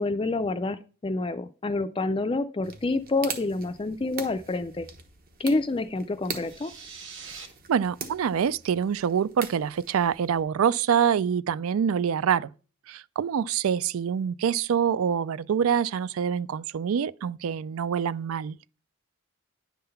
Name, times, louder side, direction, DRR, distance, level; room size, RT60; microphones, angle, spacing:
voice 1, 0.0-4.9 5.4-6.7, left 2 dB, 25° left, 0.4 m, -28 dB
sound 1, 2.6-10.4, right 5 dB, 40° right, 1.0 m, -42 dB
sound 2, 6.3-7.5, right 5 dB, 60° right, 1.3 m, -43 dB
voice 2, 7.7-12.5 12.9-18.6, right 7 dB, 75° right, 0.3 m, -25 dB
10.5 x 3.7 x 6.8 m
head